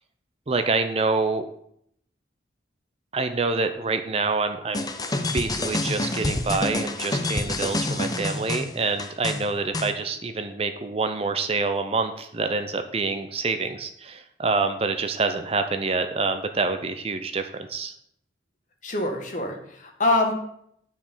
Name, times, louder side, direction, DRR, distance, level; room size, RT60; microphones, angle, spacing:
voice 1, 0.5-1.4 3.1-4.8 5.3-17.9, right 3 dB, 30° right, 8 dB, 0.5 m, -26 dB
sound 1, 4.7-9.9, left 2 dB, 20° left, 0.7 m, -28 dB
voice 2, 18.8-20.3, left 2 dB, 45° left, 2 dB, 1.6 m, -24 dB
9.5 x 5.1 x 5.5 m, 0.71 s
head